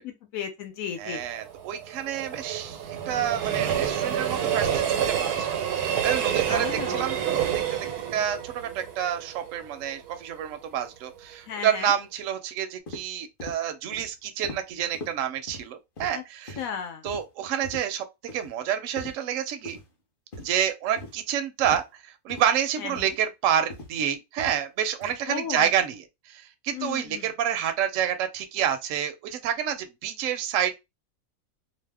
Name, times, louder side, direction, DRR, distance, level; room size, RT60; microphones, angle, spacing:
voice 1, 0.0-1.2 6.5-7.1 11.5-11.9 16.1-16.2 16.6-17.0 22.8-23.1 25.3-25.7 26.7-27.3, left 8 dB, 70° left, 1.0 m, -34 dB
voice 2, 1.0-7.5 8.1-16.6 17.0-19.8 20.4-30.7, right 9 dB, 70° right, 0.8 m, -29 dB
Train, 1.1-10.2 10.6-10.7, right 9 dB, 90° right, 1.1 m, -28 dB
sound 1, 12.9-13.0 13.4-13.6 13.9-14.1 14.4-14.6 14.9-15.1 15.5-15.7 16.0-16.1 16.5-16.7 17.1-17.2 17.6-17.8 18.3-18.5 19.0-19.1 19.7-19.8 20.3-20.5 21.0-21.2 21.6-21.8 22.3-22.5 23.0-23.1 23.7-23.9 24.4-24.6 25.0-25.2, left 2 dB, 45° left, 0.8 m, -40 dB
2.6 x 2.0 x 3.3 m
omnidirectional pair, 1.6 m